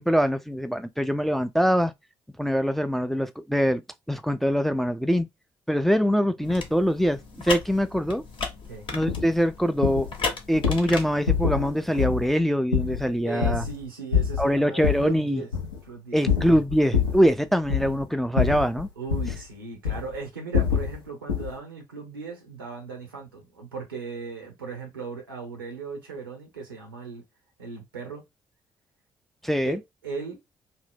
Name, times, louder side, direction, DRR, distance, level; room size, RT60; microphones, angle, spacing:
voice 1, 0.0-1.9 2.4-3.8 4.1-5.3 5.7-7.2 7.4-8.2 8.9-10.1 10.5-13.6 14.4-15.4 16.1-18.9 29.4-29.8, equal, ahead, 0.3 m, -23 dB
sound 1, 6.4-12.0, left 4 dB, 50° left, 0.8 m, -35 dB
sound 2, 9.1-9.3 9.8-10.1 10.5-10.8 11.3-11.7 12.0-12.3 12.7-13.8 14.1-15.1 15.5-15.8 16.3-17.3 17.6-18.1 18.4-19.4 19.9-20.2 20.5-21.0 21.3-21.6, left 7 dB, 85° left, 0.5 m, -26 dB
voice 2, 13.2-15.5 15.8-16.2 19.0-27.2 27.6-28.2 29.6-30.4, right 4 dB, 90° right, 0.6 m, -37 dB
2.6 x 2.0 x 3.4 m
figure-of-eight pair, 40°, 11 cm